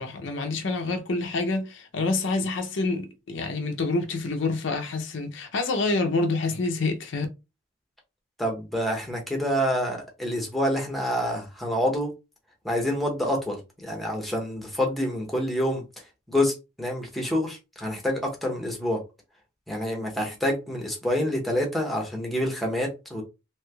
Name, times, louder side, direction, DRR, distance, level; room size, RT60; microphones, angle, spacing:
voice 1, 0.0-7.3, left 3 dB, 60° left, 0.5 m, -27 dB
voice 2, 8.4-12.1 12.6-15.8 16.3-19.0 19.7-23.2, equal, ahead, 0.7 m, -27 dB
3.1 x 2.9 x 2.2 m
head